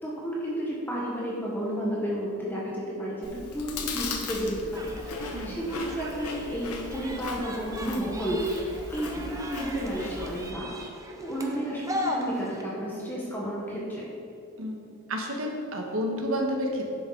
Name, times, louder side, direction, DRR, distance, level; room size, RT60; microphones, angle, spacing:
voice 1, 0.0-8.6 8.9-10.7 11.2-14.1, equal, 10° left, -5 dB, 1.3 m, -32 dB
Chewing mastication, 3.2-10.5, left 3 dB, 90° left, 1.0 m, -38 dB
sound 1, 4.7-12.6, equal, 15° right, 0.7 m, -38 dB
voice 2, 14.6-16.9, equal, 65° right, 1 dB, 1.4 m, -30 dB
10.5 x 7.6 x 4.0 m, 2.8 s
head